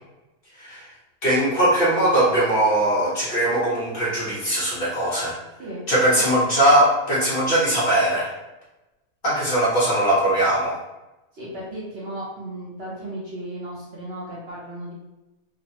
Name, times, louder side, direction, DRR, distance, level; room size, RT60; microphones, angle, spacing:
voice 1, 0.6-0.9 1.2-5.4 5.9-8.3 9.2-10.8, right 1 dB, 45° left, -7 dB, 0.9 m, -20 dB
voice 2, 11.3-14.9, right 1 dB, 55° right, -6 dB, 0.8 m, -35 dB
3.1 x 2.1 x 2.7 m, 1.0 s
omnidirectional pair, 1.5 m